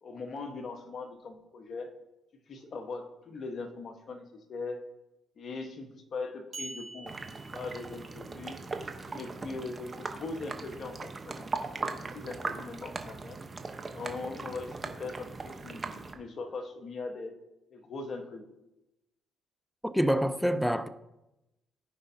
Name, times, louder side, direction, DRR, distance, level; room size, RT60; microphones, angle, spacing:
voice 1, 0.0-1.9 2.5-4.8 5.4-7.1 7.5-8.6 9.1-11.5 11.8-13.4 13.8-17.3 17.7-18.5, left 3 dB, 55° left, 1.3 m, -40 dB
sound 1, 6.5-8.4, right 3 dB, 50° right, 2.4 m, -45 dB
sound 2, 7.1-16.1, right 3 dB, 35° right, 1.0 m, -39 dB
voice 2, 19.8-20.9, equal, ahead, 0.6 m, -26 dB
14.5 x 5.5 x 2.8 m
supercardioid pair, 65°, 0 cm